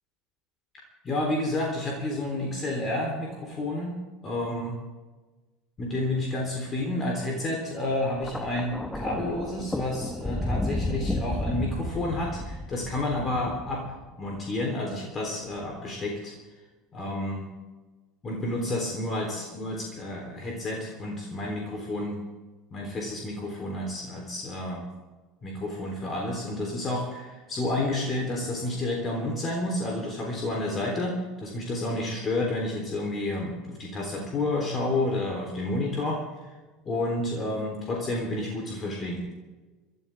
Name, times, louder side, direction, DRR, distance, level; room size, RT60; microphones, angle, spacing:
voice 1, 1.0-4.0 4.2-4.8 5.8-13.8 14.2-16.3 16.9-17.5 18.2-22.2 22.7-24.9 25.4-36.2 36.9-39.2, left 2 dB, 30° left, 0 dB, 3.7 m, -30 dB
Thunder, 8.2-14.5 15.5-15.8, left 1 dB, 10° left, 1.3 m, -32 dB
25.5 x 13.0 x 3.7 m, 1.2 s
figure-of-eight pair, 70°, 0 cm